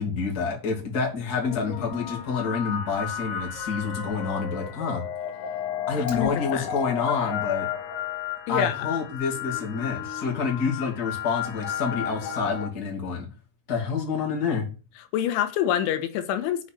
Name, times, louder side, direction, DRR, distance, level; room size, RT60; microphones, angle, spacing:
voice 1, 0.0-5.0 5.9-7.7 8.5-13.3 13.7-14.7, left 5 dB, 25° left, 2.4 m, -28 dB
sound 1, 1.3-12.7, left 9 dB, 65° left, 2.3 m, -33 dB
Fire, 5.9-6.9, equal, 10° left, 3.8 m, -46 dB
voice 2, 6.0-6.7 8.5-8.9 15.1-16.7, left 10 dB, 90° left, 3.5 m, -26 dB
7.2 x 6.2 x 7.6 m
omnidirectional pair, 5.4 m